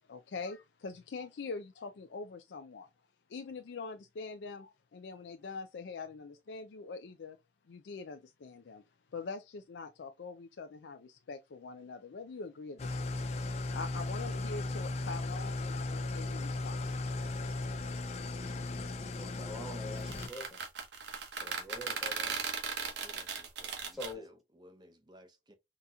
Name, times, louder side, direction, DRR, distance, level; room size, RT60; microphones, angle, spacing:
voice 1, 0.1-2.9 3.3-7.4 7.7-8.8 9.1-13.3 13.7-16.9, left 4 dB, 90° left, 0.4 m, -44 dB
Engine starting / Idling, 12.8-20.3, left 2 dB, 40° left, 0.5 m, -36 dB
voice 2, 19.2-20.6 21.4-22.4 23.9-24.3, left 1 dB, ahead, 1.2 m, -45 dB
sound 1, 20.0-24.1, right 5 dB, 85° right, 0.9 m, -37 dB
voice 3, 22.8-25.5, equal, 25° right, 0.7 m, -58 dB
4.0 x 2.8 x 2.3 m
head